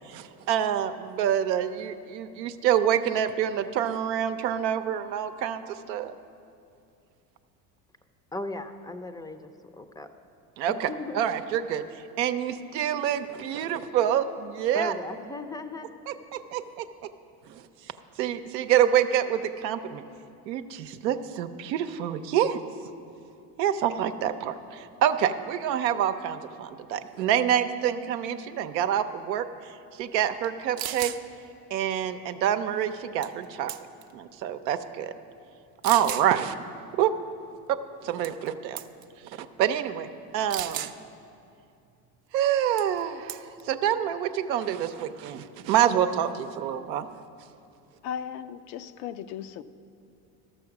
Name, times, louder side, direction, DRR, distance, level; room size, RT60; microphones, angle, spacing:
voice 1, 0.1-6.1 10.6-10.9 11.1-11.8 12.2-14.9 16.1-16.8 17.5-17.6 18.2-20.0 20.5-22.6 23.6-29.5 30.0-31.1 31.7-33.7 34.1-35.1 35.8-36.6 37.0-37.1 37.7-38.8 39.4-40.1 40.3-40.9 42.3-47.1, right 10 dB, 90° right, 0.7 m, -27 dB
voice 2, 8.3-10.1 10.7-11.3 14.7-15.9, left 2 dB, 10° left, 0.4 m, -37 dB
sound 1, 30.4-30.5 30.8-31.2 33.2-33.4 33.7-34.1 34.8-34.9 35.8-36.3 38.2-38.5 38.8-39.0 40.5-41.0 42.8-43.0 43.3-43.6, right 13 dB, 50° right, 0.6 m, -34 dB
voice 3, 48.0-49.6, left 9 dB, 80° left, 0.6 m, -36 dB
12.5 x 7.0 x 5.9 m
hypercardioid pair, 80°, 49 cm